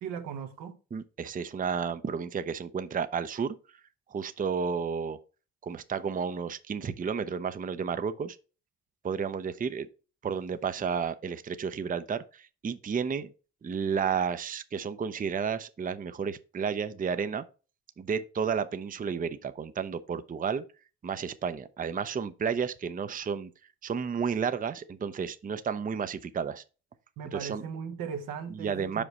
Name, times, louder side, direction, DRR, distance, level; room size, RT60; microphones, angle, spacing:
voice 1, 0.0-0.8 27.2-29.0, right 7 dB, 85° right, 0.9 m, -38 dB
voice 2, 0.9-3.6 4.1-5.2 5.6-8.4 9.0-9.9 10.2-13.3 13.6-17.4 18.0-20.6 21.0-23.5 23.8-26.6 27.3-27.6 28.5-29.0, right 6 dB, 25° right, 0.5 m, -32 dB
5.1 x 5.1 x 4.1 m
supercardioid pair, 60°, 33 cm